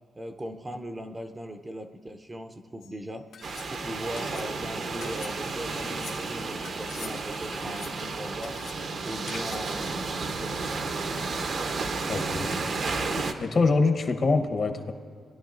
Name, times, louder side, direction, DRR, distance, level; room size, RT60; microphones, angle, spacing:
voice 1, 0.2-3.3 3.7-8.6 9.0-10.7, equal, 15° right, 7 dB, 0.6 m, -39 dB
sound 1, 2.8-2.9 3.3-3.7 4.2-4.5 5.0-5.3 5.8-6.2 6.6-7.2 7.5-8.0 8.4-8.8 9.3-9.7, left 6 dB, 80° left, 1.3 m, -44 dB
sound 2, 3.4-13.3, right 3 dB, 55° right, 0.8 m, -32 dB
voice 2, 12.1-12.5 13.4-14.9, left 3 dB, 45° left, 7 dB, 0.9 m, -24 dB
20.5 x 11.0 x 2.5 m, 2.2 s
cardioid pair, 115°, 0 cm